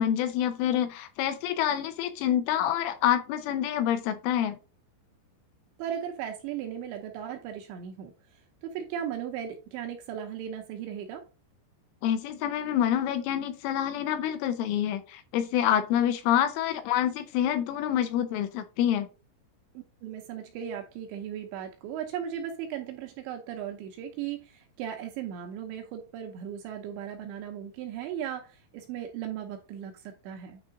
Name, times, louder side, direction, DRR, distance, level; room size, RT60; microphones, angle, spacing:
voice 1, 0.0-4.6 12.0-19.1, left 10 dB, 80° left, 3.0 m, -27 dB
voice 2, 5.8-11.3 19.7-30.6, right 9 dB, 75° right, 2.9 m, -37 dB
9.7 x 3.7 x 3.7 m
omnidirectional pair, 6.0 m